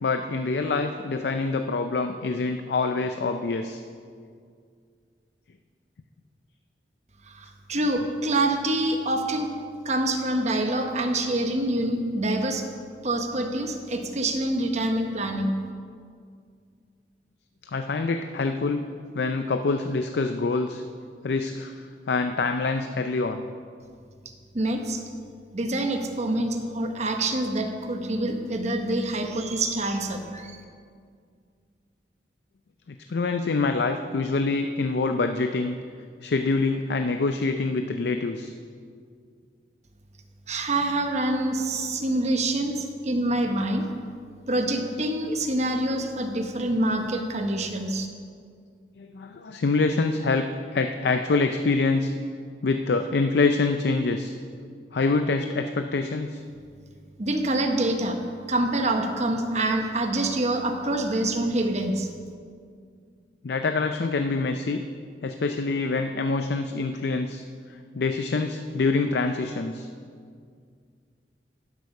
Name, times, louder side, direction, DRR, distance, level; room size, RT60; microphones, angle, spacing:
voice 1, 0.0-3.8 17.6-18.9 19.1-20.8 21.2-23.4 32.9-35.8 36.2-38.5 49.0-52.1 52.6-54.3 54.9-56.4 63.4-64.8 65.2-67.4 67.9-69.9, left 3 dB, 65° left, 7 dB, 0.5 m, -25 dB
voice 2, 7.3-9.5 9.8-12.6 13.0-15.5 24.5-25.0 25.5-30.6 40.5-43.9 44.5-48.1 57.2-58.2 58.5-62.1, right 1 dB, 40° right, 5 dB, 1.0 m, -26 dB
11.0 x 8.2 x 5.4 m, 2.2 s
head